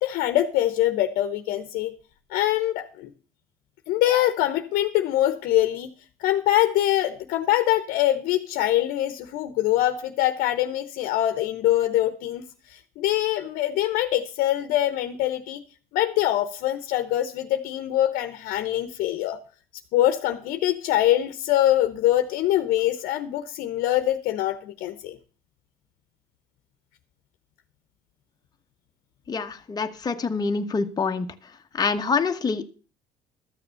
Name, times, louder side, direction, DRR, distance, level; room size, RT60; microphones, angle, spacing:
voice 1, 0.0-1.9 2.3-3.1 3.9-5.9 6.2-15.6 15.9-19.4 19.9-25.2, left 13 dB, 75° left, 10 dB, 0.9 m, -24 dB
voice 2, 29.3-31.3 31.8-32.6, left 4 dB, 25° left, 5 dB, 1.1 m, -26 dB
13.0 x 6.8 x 6.8 m, 0.39 s
supercardioid pair, 95°, 15 cm